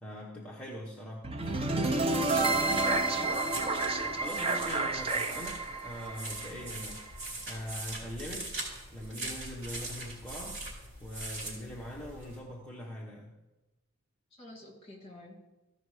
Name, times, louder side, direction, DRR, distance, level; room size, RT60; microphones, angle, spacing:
voice 1, 0.0-1.3 4.2-5.6 5.8-8.6 8.9-10.7 11.0-13.4, equal, 5° left, -5 dB, 1.0 m, -42 dB
sound 1, 1.2-7.3, right 2 dB, 25° right, 0.6 m, -30 dB
sound 2, 1.4-12.4, right 2 dB, 60° right, 4.2 m, -42 dB
voice 2, 2.3-3.4 5.3-5.4 14.4-15.4, left 1 dB, 30° left, -1 dB, 2.6 m, -47 dB
14.5 x 5.2 x 4.9 m, 1.1 s
head